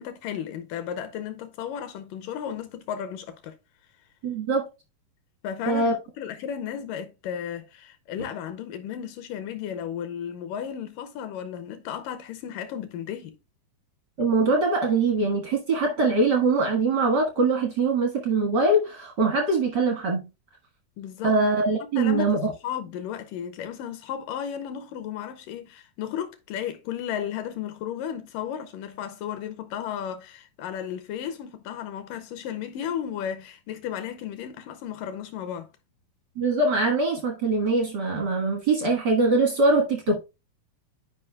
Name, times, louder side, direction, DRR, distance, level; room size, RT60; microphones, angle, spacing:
voice 1, 0.0-3.6 5.4-13.4 21.0-21.4 21.8-35.7, left 9 dB, 75° left, 2.1 m, -34 dB
voice 2, 4.2-4.7 5.7-5.9 14.2-20.2 21.2-22.5 36.3-40.2, right 3 dB, 65° right, 1.0 m, -23 dB
11.0 x 5.0 x 2.2 m
omnidirectional pair, 4.3 m